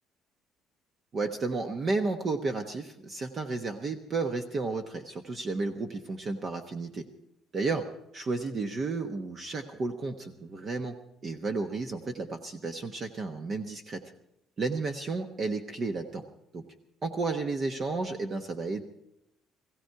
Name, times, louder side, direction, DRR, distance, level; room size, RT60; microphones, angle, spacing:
voice 1, 1.1-7.1 7.5-7.9 8.1-14.0 14.6-16.2 16.5-16.6 17.0-18.8, right 3 dB, 35° right, 6 dB, 1.1 m, -32 dB
19.0 x 16.0 x 4.7 m, 0.81 s
cardioid pair, 150°, 0 cm